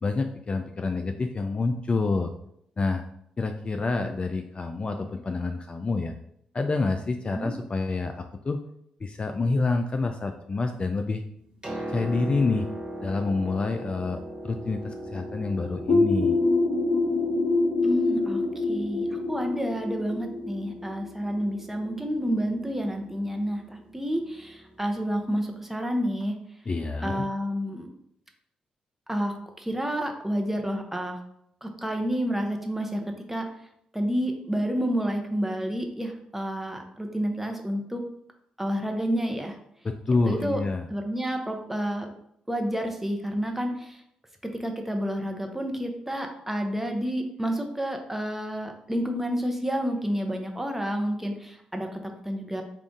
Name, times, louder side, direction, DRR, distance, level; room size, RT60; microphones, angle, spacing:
voice 1, 0.0-2.3 2.8-3.0 3.4-6.1 6.5-8.6 9.0-11.2 11.9-12.7 13.0-14.2 14.4-16.4 26.7-27.2 39.8-40.9, left 3 dB, 35° left, 5 dB, 0.4 m, -27 dB
Piano, 11.4-25.1 26.2-26.3, right 1 dB, 25° right, 1.4 m, -40 dB
sound 1, 15.9-21.4, left 3 dB, 55° left, 0.8 m, -25 dB
voice 2, 17.8-26.4 27.0-27.9 29.1-31.2 31.6-33.5 33.9-38.0 38.6-39.6 40.3-40.6 40.9-42.1 42.5-44.0 44.4-52.6, equal, 10° right, 3 dB, 0.8 m, -29 dB
3.7 x 2.5 x 3.5 m, 0.72 s
hypercardioid pair, 45°, 3 cm